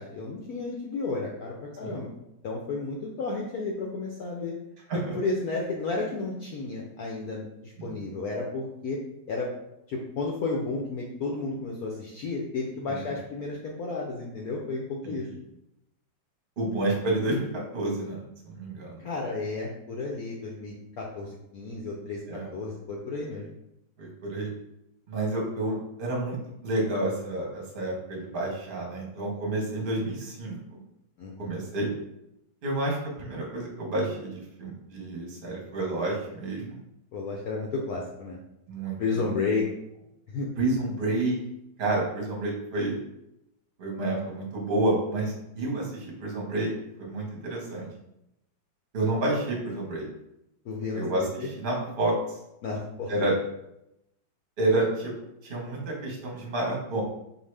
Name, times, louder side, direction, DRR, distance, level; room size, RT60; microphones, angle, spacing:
voice 1, 0.0-2.1 2.4-4.5 4.9-9.0 9.3-9.5 9.9-15.3 19.0-23.4 31.2-31.6 37.1-38.4 39.0-39.6 40.3-40.5 50.7-51.0 51.4-51.5 52.6-53.1, left 3 dB, 75° left, -2 dB, 0.8 m, -32 dB
voice 2, 12.9-13.2 15.0-15.4 16.6-19.0 22.3-22.5 24.0-24.5 25.1-30.8 31.4-31.9 32.6-36.8 38.7-39.3 40.6-41.3 41.8-42.9 43.8-46.7 47.0-47.9 48.9-50.1 50.9-52.4 53.1-53.3 54.6-55.1 55.4-57.0, right 2 dB, 35° right, -2 dB, 0.9 m, -29 dB
4.6 x 2.8 x 3.2 m, 0.85 s
omnidirectional pair, 2.2 m